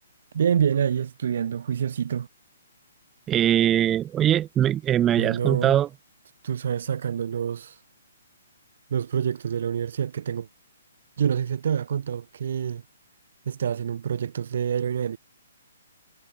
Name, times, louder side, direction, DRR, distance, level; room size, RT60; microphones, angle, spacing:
voice 1, 0.3-2.3 5.2-5.8 6.4-7.7 8.9-10.5 11.2-12.8 13.5-15.2, right 8 dB, 60° right, 2.5 m, -26 dB
voice 2, 3.3-5.9, right 11 dB, 15° right, 1.7 m, -21 dB
hypercardioid pair, 145°, 0 cm